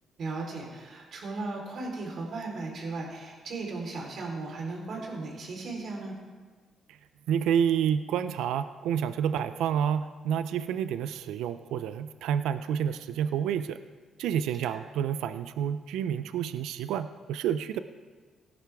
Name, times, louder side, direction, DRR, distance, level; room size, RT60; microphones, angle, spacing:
voice 1, 0.2-6.1 14.7-14.8, right 3 dB, 60° right, -1 dB, 3.8 m, -36 dB
voice 2, 7.3-13.8 14.2-17.8, right 9 dB, 85° right, 12 dB, 0.4 m, -29 dB
17.5 x 10.5 x 3.5 m, 1.4 s
cardioid pair, 90°, 0 cm